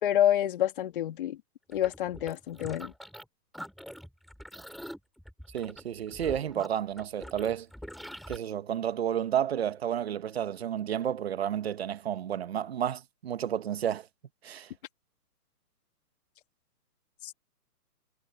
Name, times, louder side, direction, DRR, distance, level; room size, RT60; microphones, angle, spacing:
voice 1, 0.0-1.4 1.7-2.9 17.2-17.3, left 11 dB, 35° left, 3.2 m, -28 dB
sound 1, 1.7-3.3 3.5-8.4, equal, ahead, 3.5 m, -44 dB
voice 2, 5.5-7.7 8.3-14.1 14.4-14.7, right 9 dB, 40° right, 1.4 m, -31 dB
hypercardioid pair, 170°, 47 cm